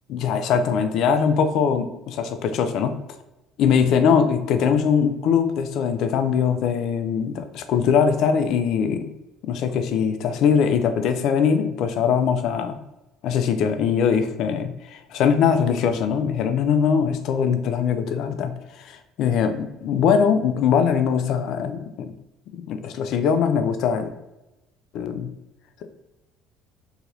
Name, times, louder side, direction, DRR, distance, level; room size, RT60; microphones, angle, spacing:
voice 1, 0.1-3.0 3.6-9.1 9.4-12.8 13.2-18.5 18.8-22.1 22.7-24.1 24.9-25.3, left 7 dB, 65° left, 9 dB, 0.3 m, -21 dB
2.8 x 2.8 x 2.5 m, 0.99 s
supercardioid pair, 80°, 0 cm